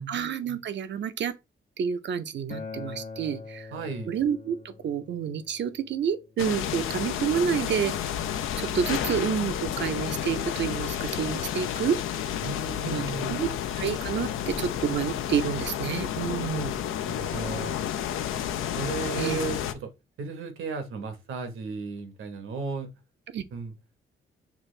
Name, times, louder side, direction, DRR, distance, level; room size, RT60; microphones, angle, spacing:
voice 1, 0.1-1.3 1.8-3.7 4.1-7.9 8.6-12.0 12.9-13.5 13.7-16.7 19.2-19.4 23.3-23.4, right 8 dB, 60° right, 0.6 m, -29 dB
Acoustic guitar, 2.5-7.7, left 4 dB, 40° left, 0.9 m, -44 dB
voice 2, 3.7-4.1 12.4-13.4 17.1-17.8 18.8-19.9 20.2-22.9 23.5-23.7, right 4 dB, 80° right, 1.1 m, -35 dB
sound 1, 6.4-19.7, left 10 dB, 85° left, 0.5 m, -31 dB
6.0 x 2.4 x 3.2 m
cardioid pair, 85°, 21 cm